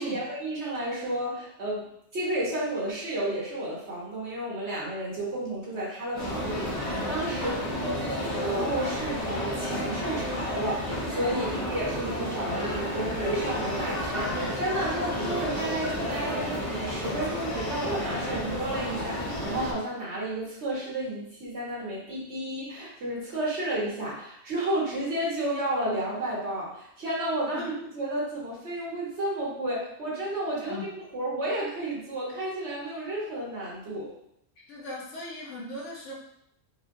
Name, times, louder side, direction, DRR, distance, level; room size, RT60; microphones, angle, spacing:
voice 1, 0.0-34.1, right 1 dB, 70° right, -5 dB, 1.7 m, -32 dB
sound 1, 6.1-19.7, equal, 75° left, 1.7 m, -31 dB
voice 2, 34.7-36.1, left 2 dB, 90° left, -3 dB, 1.4 m, -38 dB
4.9 x 3.6 x 2.7 m, 0.74 s
omnidirectional pair, 1.2 m